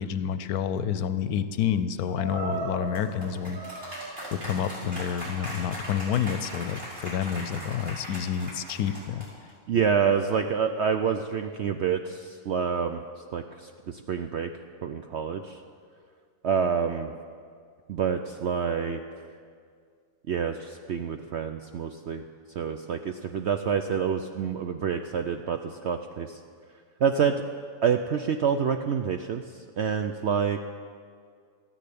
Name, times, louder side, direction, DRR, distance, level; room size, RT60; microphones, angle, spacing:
voice 1, 0.0-9.3, left 8 dB, 75° left, 12 dB, 1.1 m, -29 dB
sound 1, 2.1-9.5, right 1 dB, 35° right, 5.3 m, -38 dB
voice 2, 9.7-13.0 13.3-14.5 14.8-15.6 16.4-17.1 17.9-19.0 20.3-22.2 22.6-25.6 25.8-26.4 27.0-27.4 27.8-29.4 29.8-30.6, right 7 dB, 65° right, 7 dB, 0.6 m, -27 dB
13.5 x 10.0 x 8.6 m, 2.1 s
omnidirectional pair, 1.7 m